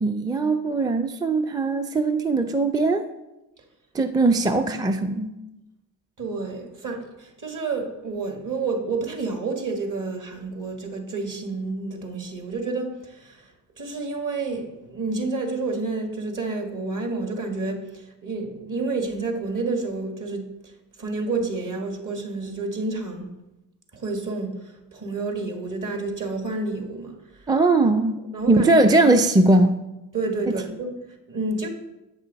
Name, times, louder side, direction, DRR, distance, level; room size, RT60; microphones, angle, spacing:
voice 1, 0.0-3.1 3.9-5.3 27.5-28.2 28.5-29.7 30.5-30.6, right 2 dB, 10° right, 0.4 m, -20 dB
voice 2, 6.2-23.4 23.9-27.5 28.3-28.7 30.1-31.7, right 3 dB, 45° right, 1.8 m, -30 dB
8.1 x 5.5 x 4.0 m
supercardioid pair, 50°, 42 cm